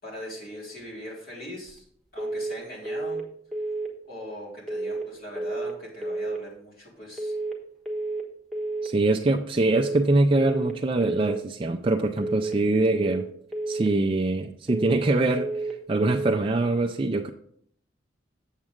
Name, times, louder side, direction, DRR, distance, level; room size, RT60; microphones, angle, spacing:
voice 1, 0.0-1.8 2.1-3.2 4.1-7.3, left 1 dB, 50° left, -4 dB, 3.4 m, -40 dB
sound 1, 2.2-2.6 2.9-3.3 3.5-3.9 4.7-5.1 5.4-5.8 6.0-6.4 7.2-7.6 7.9-8.3 8.5-8.9 9.7-10.1 10.4-10.8 11.0-11.4 12.2-12.6 12.9-13.3 13.5-13.9 14.7-15.1 15.4-15.8 16.0-16.4, right 2 dB, ahead, 1.3 m, -30 dB
voice 2, 8.8-13.3 13.7-15.5 15.9-17.3, right 2 dB, 30° right, 2 dB, 0.4 m, -23 dB
7.6 x 7.3 x 3.6 m, 0.64 s
head